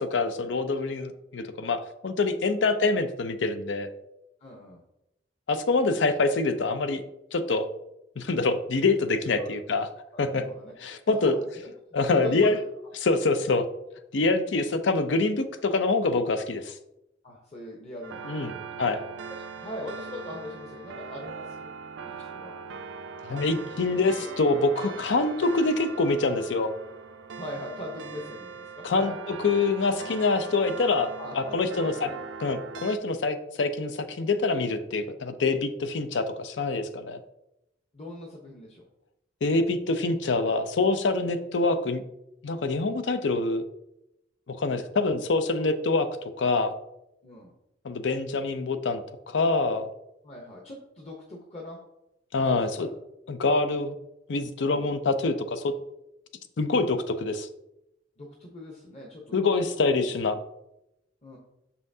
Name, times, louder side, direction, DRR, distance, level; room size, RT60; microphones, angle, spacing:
voice 1, 0.0-3.9 5.5-7.0 7.3-7.7 8.2-9.9 10.2-10.4 10.8-11.3 11.9-12.6 13.0-13.6 14.1-16.7 18.2-19.0 23.2-26.7 28.8-32.1 32.4-37.2 39.4-42.0 42.4-43.6 44.5-46.1 46.4-46.8 47.8-49.9 52.3-52.9 53.3-53.9 54.3-55.7 56.6-57.5 59.3-60.4, left 3 dB, 90° left, 10 dB, 0.5 m, -25 dB
voice 2, 4.4-4.8 9.3-9.5 10.1-10.7 11.0-12.6 13.4-13.5 17.2-21.7 22.0-22.5 24.2-24.3 27.3-29.2 31.2-32.2 37.9-38.9 47.2-47.5 50.2-51.8 52.5-52.9 54.7-54.9 58.2-59.4 59.8-59.9 61.2-61.4, left 1 dB, 35° left, -2 dB, 0.9 m, -41 dB
sound 1, 18.0-33.0, right 5 dB, 80° right, 0.4 m, -41 dB
6.3 x 5.6 x 2.7 m, 0.86 s
head